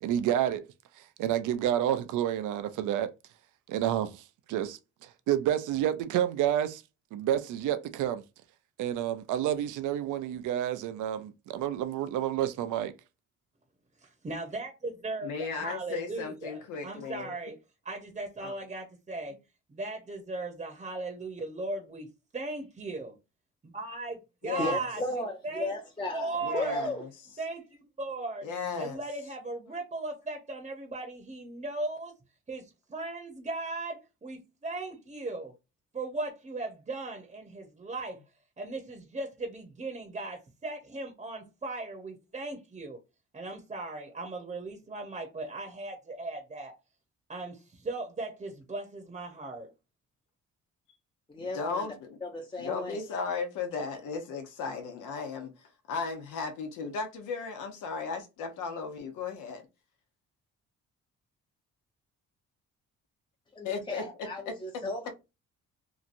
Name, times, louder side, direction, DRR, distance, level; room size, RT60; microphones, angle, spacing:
voice 1, 0.0-0.7 1.2-3.1 3.7-4.2 4.5-6.8 7.1-8.2 8.8-12.9, right 11 dB, 85° right, 0.5 m, -29 dB
voice 2, 14.0-17.6 17.8-19.3 19.7-23.2 23.6-25.7 26.1-26.9 27.4-28.5 28.8-32.1 32.5-35.5 35.9-38.2 38.6-43.0 43.3-46.7 47.3-49.7, right 2 dB, 25° right, 0.8 m, -37 dB
voice 3, 15.2-17.3 18.4-18.5 24.4-24.8 26.4-27.1 28.4-29.0 51.4-52.2 52.6-59.6 63.6-64.0 64.5-64.6, left 5 dB, 85° left, 0.8 m, -35 dB
voice 4, 24.6-27.0 51.3-51.9 52.2-53.0 63.5-65.1, left 1 dB, 15° left, 0.7 m, -35 dB
2.9 x 2.5 x 2.5 m
cardioid pair, 90°, 30 cm